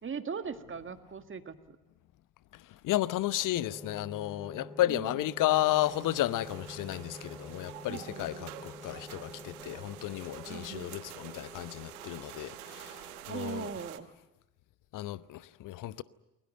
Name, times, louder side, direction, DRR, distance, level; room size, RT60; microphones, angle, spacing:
voice 1, 0.0-1.8 4.8-5.2 7.9-8.6 10.5-11.0 13.3-14.1, right 6 dB, 25° right, 1.8 m, -40 dB
voice 2, 2.8-12.5 13.3-13.7 14.9-16.0, left 15 dB, 45° left, 0.9 m, -32 dB
sound 1, 3.5-13.2, left 1 dB, ahead, 2.1 m, -48 dB
sound 2, 5.8-14.0, right 15 dB, 70° right, 1.1 m, -48 dB
29.0 x 22.0 x 7.8 m
figure-of-eight pair, 50°, 45 cm